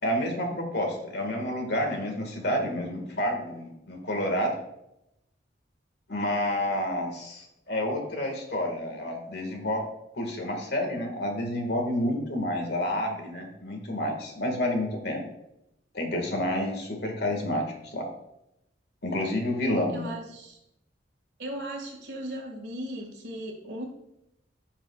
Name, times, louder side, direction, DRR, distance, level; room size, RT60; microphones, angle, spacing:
voice 1, 0.0-4.5 6.1-9.9 10.1-15.2 15.9-18.1 19.0-20.1, left 1 dB, 60° left, 3 dB, 2.0 m, -29 dB
voice 2, 19.9-20.6 21.4-23.8, right 1 dB, 65° right, 1 dB, 2.1 m, -37 dB
14.5 x 5.6 x 2.5 m, 0.83 s
head